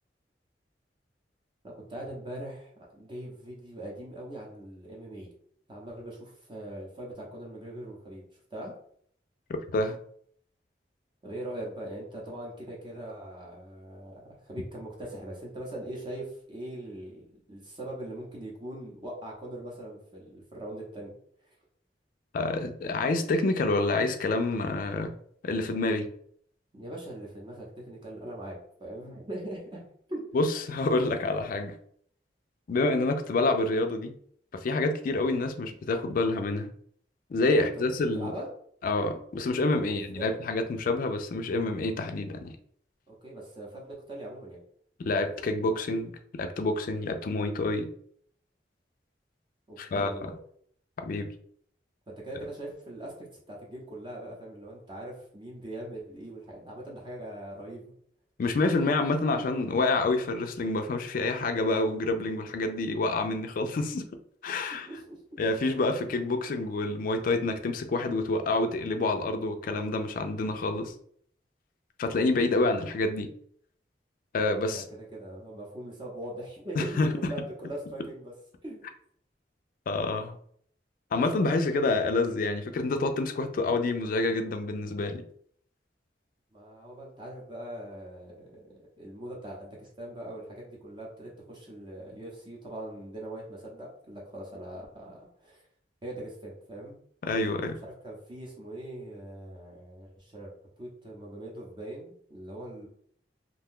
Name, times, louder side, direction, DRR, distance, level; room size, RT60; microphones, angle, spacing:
voice 1, 1.6-5.3 5.7-8.7 11.2-21.1 26.7-29.8 30.1-30.3 37.5-37.8 38.1-38.5 39.8-40.4 43.1-44.6 49.7-50.3 52.1-57.9 64.7-65.2 74.7-78.3 78.6-78.9 86.5-95.6 96.0-97.0 98.0-100.5 100.8-102.9, right 1 dB, 30° right, -2 dB, 0.7 m, -41 dB
voice 2, 9.5-10.0 22.3-25.2 25.4-26.1 30.3-31.8 32.7-34.1 34.5-36.7 37.3-38.3 38.8-42.5 45.0-47.9 49.8-50.3 51.0-51.3 58.4-64.1 64.4-64.9 65.4-70.9 72.0-73.3 74.3-74.9 76.8-77.3 79.9-80.4 81.1-85.2 97.2-97.8, left 2 dB, 50° left, 7 dB, 0.3 m, -28 dB
2.6 x 2.2 x 3.6 m, 0.63 s
head